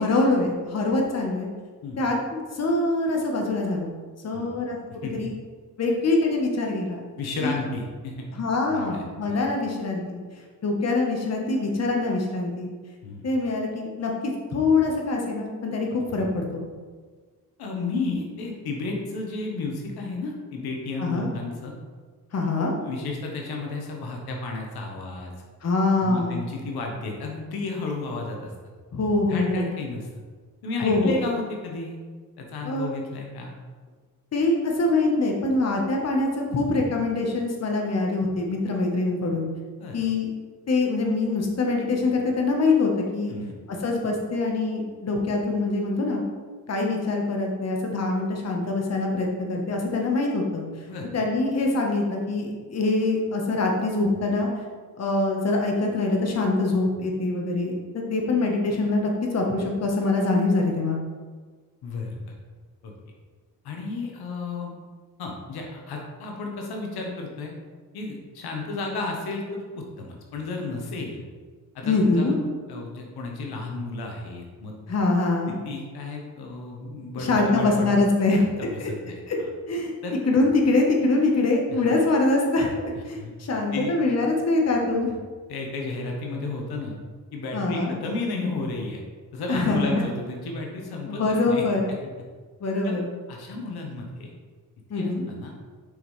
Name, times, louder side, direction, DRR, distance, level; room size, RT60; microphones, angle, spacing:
voice 1, 0.0-1.5 2.0-3.9 4.2-4.8 5.1-5.3 5.8-7.0 7.4-7.5 8.3-10.2 10.6-12.7 13.2-16.6 21.0-21.3 22.3-22.7 25.6-26.4 28.9-29.7 30.8-31.2 32.6-32.9 34.3-39.5 39.9-40.3 40.7-43.3 43.7-46.2 46.7-50.6 51.1-54.5 55.0-61.0 71.8-72.3 74.9-75.5 77.1-78.5 79.3-79.4 79.7-79.9 80.3-82.7 83.1-85.1 87.5-87.9 89.5-90.1 91.0-91.9 92.6-93.1 94.9-95.2, left 3 dB, 45° left, 1 dB, 1.2 m, -24 dB
voice 2, 7.2-8.3 8.7-9.4 13.0-13.2 17.6-21.7 22.8-25.3 26.0-28.5 29.3-30.1 30.6-32.0 32.4-33.5 39.8-40.0 43.3-43.6 50.9-51.1 61.8-62.3 62.8-62.9 63.6-64.7 65.2-67.5 67.9-71.2 71.7-72.4 72.7-74.7 75.5-77.9 78.4-79.5 80.0-80.1 81.7-81.8 83.2-83.3 83.7-84.0 85.5-86.9 87.3-89.0 89.3-91.6 92.0-92.1 92.8-93.0 93.3-94.3 94.9-95.5, left 3 dB, 85° left, 1 dB, 1.1 m, -33 dB
6.8 x 5.4 x 3.2 m, 1.5 s
cardioid pair, 100°, 37 cm